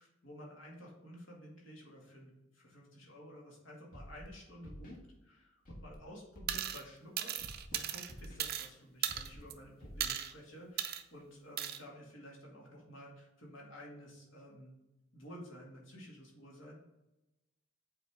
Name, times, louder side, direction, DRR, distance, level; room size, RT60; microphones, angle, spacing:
voice 1, 0.0-10.8 11.1-14.8 15.1-16.8, equal, 65° left, -2 dB, 2.1 m, -52 dB
Scratching (performance technique), 3.9-4.3 4.6-5.0 5.6-6.0 6.3-6.6 7.4-7.8 8.1-8.4 9.1-9.4 9.8-10.1, equal, 45° left, 1.4 m, -49 dB
sound 1, 6.5-6.8 7.2-8.7 9.0-9.5 10.0-10.3 10.8-11.0 11.6-11.8, right 10 dB, 50° right, 0.5 m, -37 dB
7.8 x 4.3 x 3.5 m, 0.98 s
head